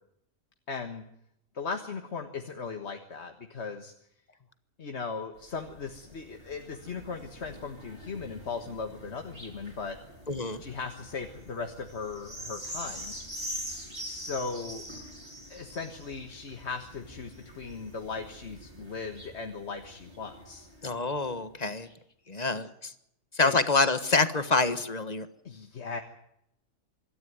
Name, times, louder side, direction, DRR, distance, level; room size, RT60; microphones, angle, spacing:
voice 1, 0.7-1.0 1.5-3.9 4.8-10.0 10.6-13.1 14.0-14.8 15.5-20.7 22.3-22.4 23.4-23.5 25.4-26.0, left 4 dB, 60° left, 5 dB, 1.8 m, -38 dB
sound 1, 5.4-21.2 21.8-21.9, equal, 35° right, 8.0 m, -44 dB
voice 2, 10.3-10.6 20.8-21.9 22.3-22.9 23.3-25.3, left 3 dB, 35° left, 12 dB, 1.4 m, -26 dB
25.5 x 13.5 x 9.4 m, 0.76 s
omnidirectional pair, 1.3 m